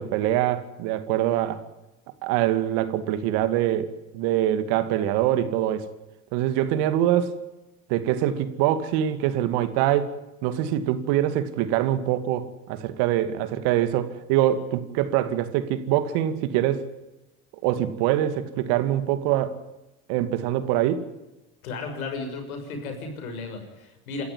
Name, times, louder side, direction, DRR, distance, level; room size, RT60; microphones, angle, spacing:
voice 1, 0.0-1.6 2.2-5.9 6.3-7.4 7.9-10.2 10.4-16.9 17.6-19.6 20.1-21.0, right 12 dB, 70° right, 2.4 m, -24 dB
voice 2, 21.6-24.2, left 3 dB, 85° left, 6.4 m, -34 dB
28.0 x 14.0 x 9.7 m
hypercardioid pair, 70°, 42 cm